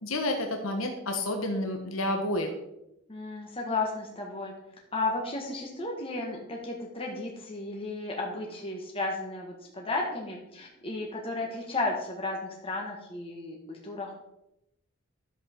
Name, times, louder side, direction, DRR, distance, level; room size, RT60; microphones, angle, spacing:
voice 1, 0.0-2.5, left 1 dB, 75° left, 3 dB, 1.3 m, -30 dB
voice 2, 3.1-4.5 4.9-14.1, left 2 dB, 25° left, -1 dB, 1.6 m, -33 dB
12.0 x 7.7 x 4.5 m, 0.86 s
head